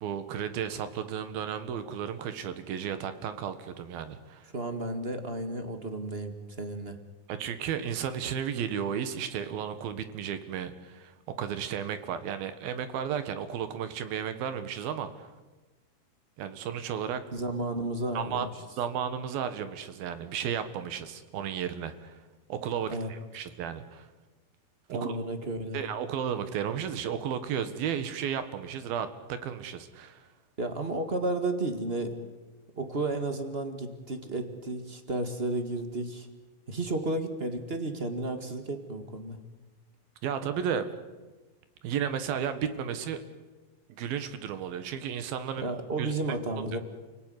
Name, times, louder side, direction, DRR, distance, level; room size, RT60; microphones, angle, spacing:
voice 1, 0.0-4.5 7.3-15.3 16.4-17.2 18.2-18.5 18.8-22.2 22.5-24.1 24.9-25.2 25.7-30.3 40.2-40.9 41.8-43.2 43.9-45.7 46.0-46.1, right 8 dB, 80° right, 11 dB, 3.4 m, -33 dB
voice 2, 4.5-7.0 17.3-18.5 22.9-23.1 24.9-25.8 30.6-32.1 32.8-36.3 36.7-39.4 45.6-46.8, right 2 dB, 25° right, 7 dB, 1.2 m, -32 dB
29.5 x 18.0 x 9.6 m, 1.2 s
omnidirectional pair, 4.3 m